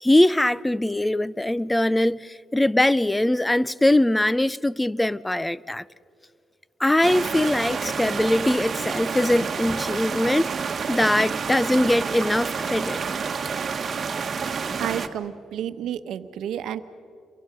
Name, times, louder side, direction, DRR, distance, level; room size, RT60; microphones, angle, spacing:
voice 1, 0.0-5.8 6.8-10.5 10.9-13.0, left 1 dB, 10° left, 0.5 m, -22 dB
sound 1, 7.0-15.1, right 5 dB, 40° right, 1.5 m, -29 dB
voice 2, 14.8-16.8, right 10 dB, 80° right, 1.0 m, -30 dB
29.0 x 23.5 x 5.3 m
cardioid pair, 90°, 0 cm